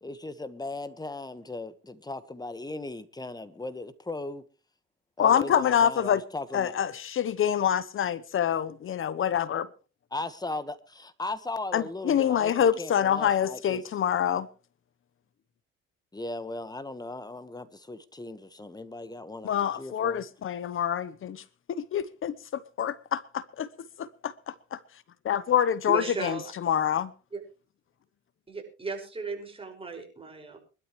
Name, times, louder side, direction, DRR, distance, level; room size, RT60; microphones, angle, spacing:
voice 1, 0.0-4.4 5.2-6.7 10.1-13.8 16.1-20.2, left 2 dB, 15° left, 1.4 m, -37 dB
voice 2, 5.2-6.2 6.5-9.7 11.7-14.5 19.4-21.4 21.7-23.7 24.0-24.8 25.2-27.1, left 9 dB, 45° left, 0.9 m, -26 dB
voice 3, 25.9-26.5 27.3-27.4 28.5-30.6, right 4 dB, 20° right, 5.8 m, -36 dB
23.5 x 12.5 x 3.2 m
cardioid pair, 95°, 29 cm